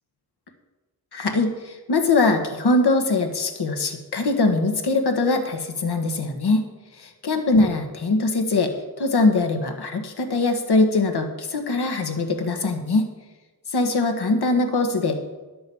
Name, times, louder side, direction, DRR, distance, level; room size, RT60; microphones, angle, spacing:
voice 1, 1.1-6.6 7.0-8.7 9.0-13.0 13.7-15.2, left 3 dB, 90° left, 5 dB, 1.5 m, -22 dB
11.5 x 7.8 x 7.0 m, 1.2 s
cardioid pair, 55°, 38 cm